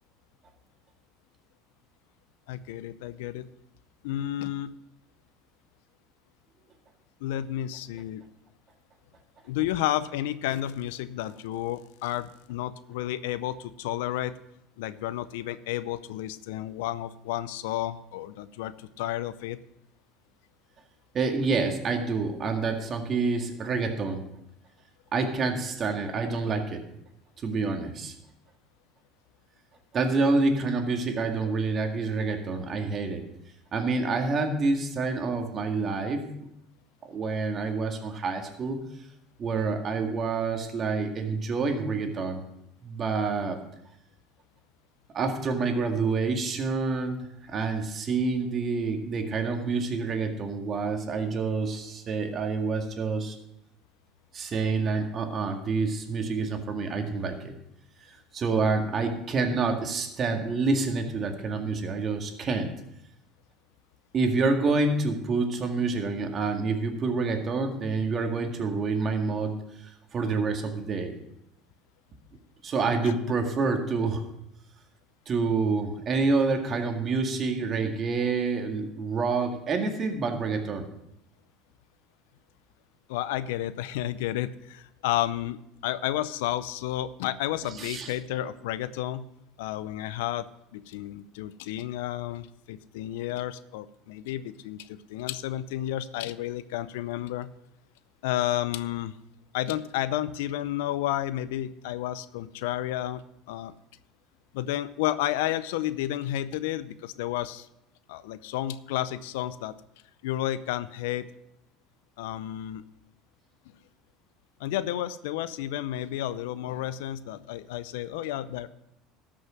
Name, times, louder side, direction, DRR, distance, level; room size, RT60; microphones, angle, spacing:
voice 1, 2.5-3.5 4.0-4.7 7.2-8.2 9.5-14.3 14.8-19.6 73.0-73.2 83.1-89.2 89.6-90.5 90.7-97.5 98.2-99.2 99.5-103.2 103.5-103.7 104.5-107.7 108.1-109.7 110.2-111.3 112.2-112.8 114.6-118.7, left 13 dB, 80° left, 16 dB, 0.5 m, -31 dB
voice 2, 21.1-24.2 25.1-26.9 27.4-28.1 29.9-33.3 33.7-36.5 37.0-38.8 39.4-42.4 42.8-43.6 45.1-53.4 54.3-57.5 58.3-62.7 64.1-69.6 70.1-71.2 72.6-74.2 75.3-80.9 87.8-88.1, right 4 dB, 40° right, 4 dB, 2.0 m, -27 dB
13.0 x 6.4 x 5.9 m, 0.80 s
supercardioid pair, 85°, 0 cm